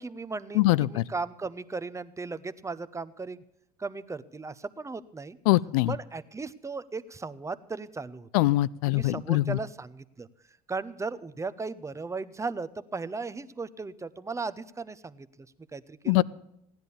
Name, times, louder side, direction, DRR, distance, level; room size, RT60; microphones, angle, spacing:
voice 1, 0.0-3.4 3.8-5.4 5.9-8.5 8.9-10.3 10.7-15.5 15.7-16.2, right 4 dB, 15° right, 15 dB, 0.8 m, -36 dB
voice 2, 0.6-1.0 5.5-5.9 8.3-9.6 16.1-16.2, left 18 dB, 80° left, 22 dB, 0.5 m, -23 dB
15.5 x 10.5 x 6.9 m, 0.78 s
hypercardioid pair, 80°, 19 cm